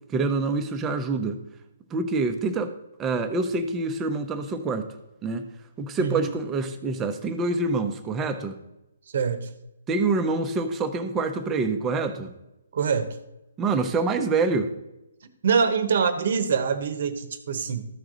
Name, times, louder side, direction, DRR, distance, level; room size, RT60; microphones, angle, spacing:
voice 1, 0.1-1.4 1.9-2.7 3.0-4.9 5.2-5.4 5.8-8.6 9.9-12.3 13.6-14.7, right 3 dB, 15° right, 7 dB, 0.8 m, -26 dB
voice 2, 9.1-9.5 12.7-13.2 15.4-17.9, right 6 dB, 60° right, 11 dB, 1.0 m, -24 dB
13.5 x 4.8 x 3.9 m, 0.93 s
hypercardioid pair, 145°, 0 cm